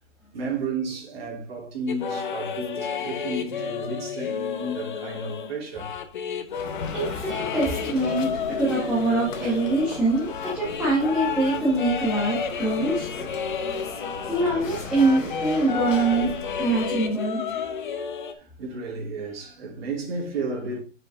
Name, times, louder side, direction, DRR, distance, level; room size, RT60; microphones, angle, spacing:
voice 1, 0.3-6.0 6.6-6.7 7.5-7.7 9.4-9.6 18.3-20.8, right 3 dB, 50° right, 3.3 m, -33 dB
sound 1, 1.9-14.7 14.9-18.3, left 7 dB, 40° left, 0.7 m, -31 dB
sound 2, 6.5-17.1, left 4 dB, 70° left, 2.4 m, -37 dB
voice 2, 6.9-13.1 14.3-17.9, right 2 dB, 5° right, 1.2 m, -24 dB
6.9 x 6.6 x 3.5 m
hypercardioid pair, 175°, 39 cm